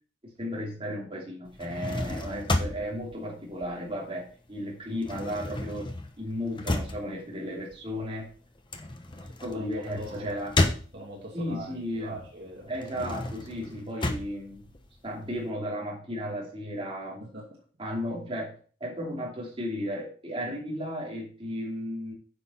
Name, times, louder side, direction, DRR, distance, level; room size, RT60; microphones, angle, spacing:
voice 1, 0.2-8.3 9.4-10.6 11.3-12.2 12.7-14.7 15.0-17.2 17.8-18.5 18.8-22.1, equal, 30° right, -4 dB, 3.2 m, -34 dB
sound 1, 1.5-4.3 4.6-11.4 11.9-15.4, left 2 dB, 25° left, 1.0 m, -32 dB
voice 2, 9.5-10.4 10.9-12.7 17.2-17.6, right 2 dB, 60° right, -2 dB, 2.6 m, -42 dB
9.6 x 6.2 x 4.4 m, 0.41 s
head